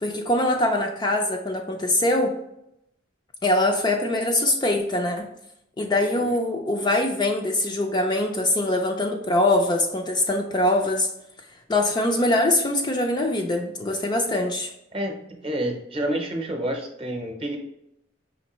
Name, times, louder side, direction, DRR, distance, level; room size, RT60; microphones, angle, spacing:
voice 1, 0.0-2.3 3.4-5.3 5.8-11.1 11.7-14.7, left 1 dB, 25° left, 2 dB, 0.4 m, -23 dB
voice 2, 6.0-6.4 14.9-17.6, right 1 dB, 30° right, 2 dB, 0.8 m, -29 dB
5.2 x 3.1 x 3.0 m, 0.80 s
head